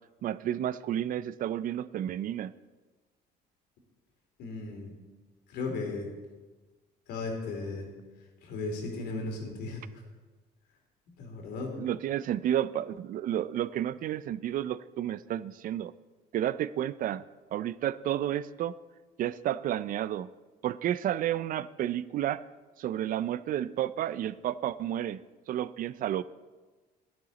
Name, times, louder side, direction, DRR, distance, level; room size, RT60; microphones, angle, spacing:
voice 1, 0.2-2.5 11.8-15.9 16.3-17.2 17.5-18.8 19.2-20.3 20.6-22.4 22.8-25.2 25.5-26.2, right 11 dB, 55° right, 16 dB, 0.4 m, -31 dB
voice 2, 4.4-4.9 5.5-6.1 7.1-7.9 8.4-10.0 11.2-11.8, left 3 dB, 80° left, 1 dB, 3.0 m, -36 dB
11.0 x 11.0 x 4.0 m, 1.3 s
cardioid pair, 110°, 17 cm